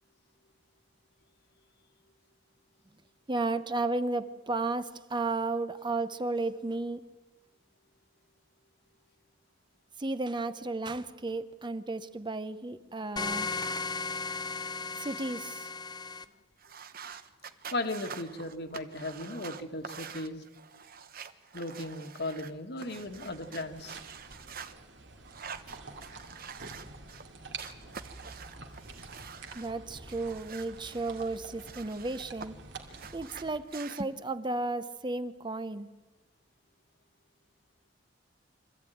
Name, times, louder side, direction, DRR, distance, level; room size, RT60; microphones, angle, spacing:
voice 1, 3.3-7.0 10.0-13.5 14.9-15.7 29.5-32.5 33.1-35.9, right 2 dB, 25° right, 12 dB, 0.8 m, -33 dB
sound 1, 13.2-16.2, left 4 dB, 25° left, 0.8 m, -35 dB
sound 2, 16.6-24.7 25.2-27.2 27.6-29.7 30.1-32.5 32.7-34.0, right 6 dB, 55° right, 1.1 m, -46 dB
voice 2, 17.7-20.4 21.5-24.0, left 2 dB, 60° left, 6 dB, 1.8 m, -36 dB
sound 3, 22.9-33.6, right 3 dB, 70° right, 2.6 m, -48 dB
24.5 x 14.0 x 9.3 m, 1.2 s
head